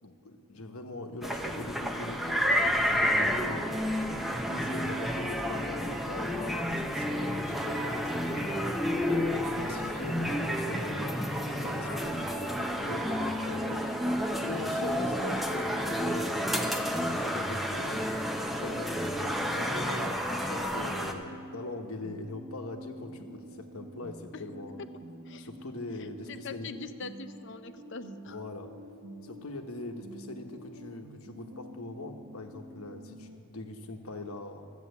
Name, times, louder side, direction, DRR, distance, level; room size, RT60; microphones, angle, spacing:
voice 1, 0.0-3.7 4.4-8.8 9.4-13.8 14.4-16.4 17.1-24.8 25.4-26.7 28.2-28.7 29.2-34.7, left 2 dB, 80° left, 5 dB, 1.1 m, -42 dB
sound 1, 1.2-21.1, equal, ahead, 0.6 m, -30 dB
sound 2, 21.0-33.4, right 1 dB, 60° right, 1.1 m, -48 dB
voice 2, 26.3-28.4, left 4 dB, 55° left, 10 dB, 0.6 m, -42 dB
13.0 x 7.2 x 8.4 m, 2.3 s
head